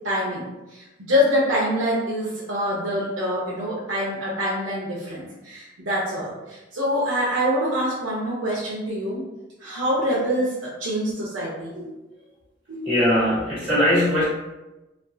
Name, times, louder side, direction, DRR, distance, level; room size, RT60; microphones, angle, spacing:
voice 1, 0.0-9.2 9.6-12.0 12.7-12.9, equal, 80° right, -7 dB, 0.7 m, -25 dB
voice 2, 12.8-14.2, left 1 dB, 30° right, -11 dB, 1.5 m, -20 dB
3.3 x 2.3 x 2.6 m, 1.0 s
head